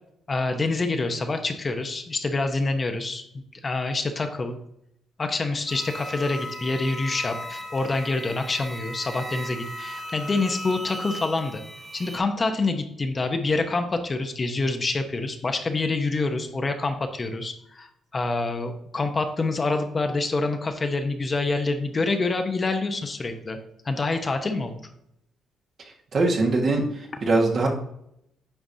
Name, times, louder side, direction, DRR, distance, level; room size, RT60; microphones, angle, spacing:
voice 1, 0.3-3.2 3.6-4.6 5.2-11.6 11.9-23.6 23.8-24.8, left 3 dB, 30° left, 6 dB, 0.9 m, -26 dB
sound 1, 5.7-12.2, equal, 30° right, 2.0 m, -37 dB
voice 2, 26.1-27.7, right 3 dB, 55° right, 1 dB, 1.6 m, -22 dB
9.0 x 4.7 x 2.7 m, 0.77 s
cardioid pair, 90°, 0 cm